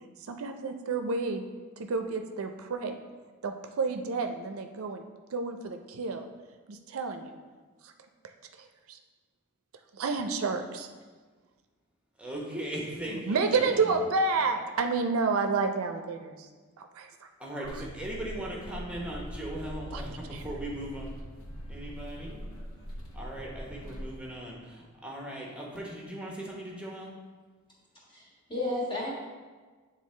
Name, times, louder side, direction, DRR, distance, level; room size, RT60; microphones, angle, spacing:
voice 1, 0.2-1.4 1.8-3.0 3.4-6.3 6.7-7.4 7.8-7.9 8.6-9.0 9.9-10.9 13.1-16.5 16.8-17.3 17.7-17.8 19.9-20.0 20.3-20.4, right 4 dB, 75° right, 6 dB, 0.5 m, -30 dB
voice 2, 12.2-13.9 17.4-21.2 21.7-22.3 23.1-27.1, right 1 dB, 5° right, -2 dB, 0.9 m, -38 dB
sound 1, 17.6-24.2, equal, 75° left, 0.9 m, -42 dB
voice 3, 28.1-29.1, left 2 dB, 25° left, -5 dB, 1.6 m, -33 dB
8.3 x 3.7 x 3.2 m, 1.4 s
head